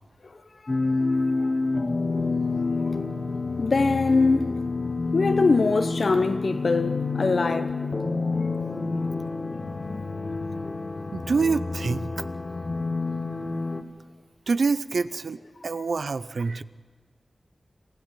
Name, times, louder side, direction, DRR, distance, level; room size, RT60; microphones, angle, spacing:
sound 1, 0.7-13.8, left 3 dB, 45° left, 1.3 m, -28 dB
voice 1, 3.6-4.5 5.1-7.7, left 3 dB, 65° left, 1.0 m, -22 dB
voice 2, 11.1-12.3 14.5-16.6, right 4 dB, 75° right, 0.6 m, -26 dB
26.0 x 13.5 x 9.2 m
wide cardioid pair, 65°, 0 cm